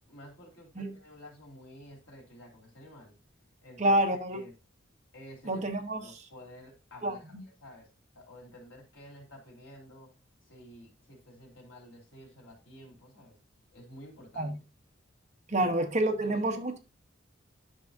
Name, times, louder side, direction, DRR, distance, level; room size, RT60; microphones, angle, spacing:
voice 1, 0.1-3.1 3.6-4.0 4.3-4.5 5.1-5.6 5.9-7.9 8.1-10.1 10.5-13.4 13.7-14.5 15.6-15.7 16.2-16.5, equal, 80° left, 3.4 m, -51 dB
voice 2, 3.8-4.4 5.4-6.2 7.0-7.4 14.4-14.5 15.5-16.8, right 1 dB, 40° right, 1.1 m, -28 dB
10.5 x 6.1 x 2.7 m
head